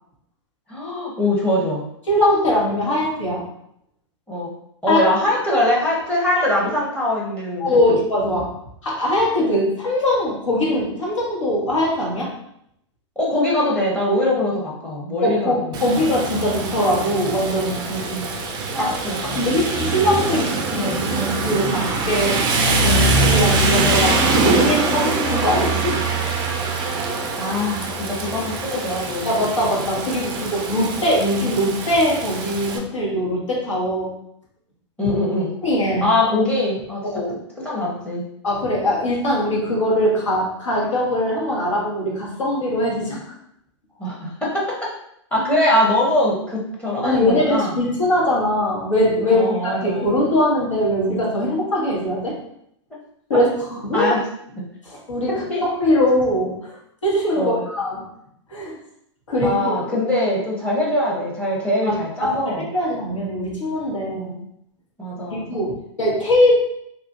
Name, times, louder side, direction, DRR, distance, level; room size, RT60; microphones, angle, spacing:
voice 1, 0.7-1.8 4.3-4.5 4.8-7.6 13.2-16.0 17.9-18.3 18.7-19.2 19.5-19.6 27.4-29.4 35.0-35.5 36.0-37.0 37.6-38.3 44.0-44.8 45.3-47.7 49.3-50.1 53.3-53.4 53.9-54.2 55.3-55.6 57.4-57.6 59.4-62.7 64.1-64.4 65.0-65.6, left 1 dB, 5° left, -4 dB, 0.7 m, -22 dB
voice 2, 2.1-3.4 4.9-5.0 7.6-8.5 8.8-12.3 15.2-17.8 18.8-22.4 22.8-26.0 26.6-26.7 29.2-34.1 35.6-36.0 37.0-37.3 38.4-43.3 47.0-52.3 53.3-54.1 54.8-56.8 57.0-58.0 58.5-58.8 59.3-59.8 61.8-61.9 62.2-62.3 62.7-64.3 65.3-66.6, left 1 dB, 85° left, -4 dB, 1.2 m, -21 dB
Rain, 15.7-32.8, right 3 dB, 25° right, 0.4 m, -23 dB
2.8 x 2.4 x 2.5 m, 0.74 s
hypercardioid pair, 115°, 16 cm